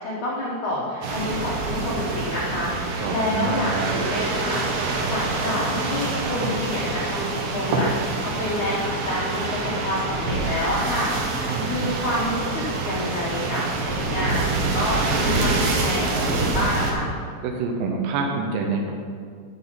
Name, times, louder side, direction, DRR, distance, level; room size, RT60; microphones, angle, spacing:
voice 1, 0.0-11.4 11.7-17.1, left 1 dB, 85° left, -6 dB, 1.7 m, -28 dB
sound 1, 1.0-16.9, right 3 dB, 70° right, 2.5 m, -26 dB
voice 2, 3.0-4.0 11.5-12.1 17.4-19.0, right 4 dB, 85° right, 1 dB, 3.6 m, -27 dB
12.5 x 8.0 x 3.9 m, 2.1 s
omnidirectional pair, 5.8 m